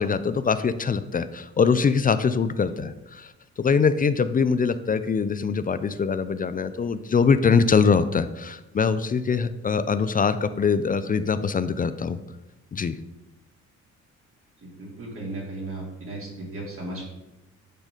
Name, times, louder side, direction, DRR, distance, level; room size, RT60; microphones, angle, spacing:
voice 1, 0.0-3.3 3.6-12.2 12.7-13.0, left 5 dB, 30° left, 13 dB, 0.4 m, -23 dB
voice 2, 14.6-17.1, right 2 dB, 45° right, -3 dB, 3.0 m, -36 dB
9.1 x 4.1 x 5.0 m, 0.96 s
cardioid pair, 90°, 30 cm